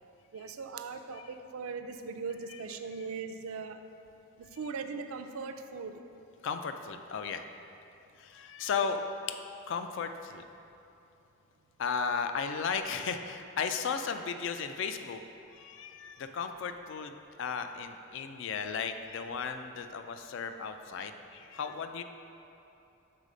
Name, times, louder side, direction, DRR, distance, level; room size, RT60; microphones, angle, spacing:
voice 1, 0.3-3.8 4.6-5.9 8.8-9.0, right 5 dB, 80° right, 8 dB, 0.4 m, -39 dB
voice 2, 6.4-7.4 8.2-9.0 9.3-9.4 9.7-10.4 11.8-15.2 15.5-22.0, left 6 dB, 55° left, 8 dB, 0.3 m, -35 dB
6.7 x 4.0 x 5.0 m, 2.9 s
head